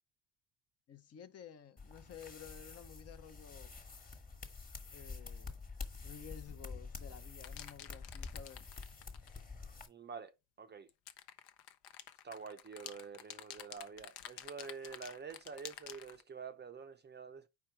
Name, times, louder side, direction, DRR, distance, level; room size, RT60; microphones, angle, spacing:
voice 1, 0.9-3.7 4.9-5.6 6.0-8.6, left 8 dB, 35° left, 0.7 m, -53 dB
sound 1, 1.8-9.9, left 4 dB, 20° left, 1.3 m, -48 dB
sound 2, 7.4-9.4 10.9-16.2, left 11 dB, 70° left, 0.8 m, -50 dB
voice 2, 9.9-10.9 12.2-17.5, right 5 dB, 25° right, 0.5 m, -48 dB
4.6 x 4.5 x 4.7 m
cardioid pair, 105°, 42 cm